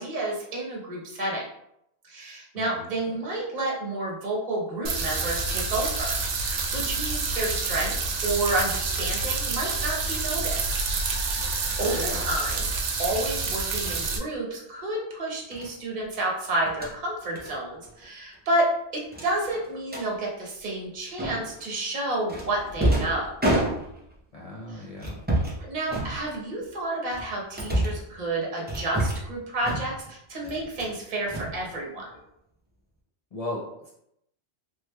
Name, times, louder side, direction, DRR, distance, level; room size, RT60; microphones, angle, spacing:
voice 1, 0.0-1.4 2.1-10.7 11.8-12.7 13.0-23.3 24.7-24.8 25.6-32.0, right 1 dB, 40° right, -3 dB, 0.9 m, -30 dB
voice 2, 2.6-2.9 11.7-12.2 24.3-25.1 33.3-33.9, left 1 dB, 50° left, -5 dB, 0.4 m, -36 dB
sound 1, 4.9-14.2, right 4 dB, 75° right, 0.9 m, -28 dB
sound 2, 13.7-14.0 15.5-15.7 16.6-16.9 17.3-17.5 17.8-18.0 18.3-18.4 19.1-20.1 21.2-21.6 22.3-24.2 25.0-25.6 25.9-26.6 27.1-28.1 28.7-29.3 29.6-30.1 30.4-31.0 31.3-32.1, right 1 dB, 15° right, 0.4 m, -29 dB
3.3 x 3.0 x 2.2 m, 0.79 s
omnidirectional pair, 1.2 m